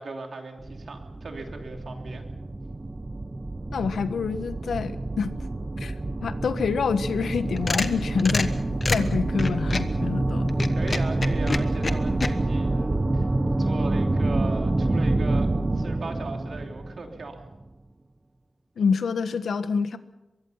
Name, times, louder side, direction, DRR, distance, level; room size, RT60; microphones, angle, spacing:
voice 1, 0.0-2.3 10.7-13.3 13.6-17.4, right 3 dB, 50° right, 3 dB, 3.1 m, -38 dB
sound 1, 0.6-17.6, right 2 dB, 20° right, 1.0 m, -27 dB
voice 2, 3.7-5.3 5.8-5.9 6.2-8.5 8.9-10.6 18.8-20.0, left 5 dB, 85° left, 11 dB, 1.3 m, -27 dB
sound 2, 7.3-10.0 10.5-12.3, left 3 dB, 30° left, 1.2 m, -28 dB
23.5 x 23.0 x 5.7 m, 1.0 s
wide cardioid pair, 170°, 0 cm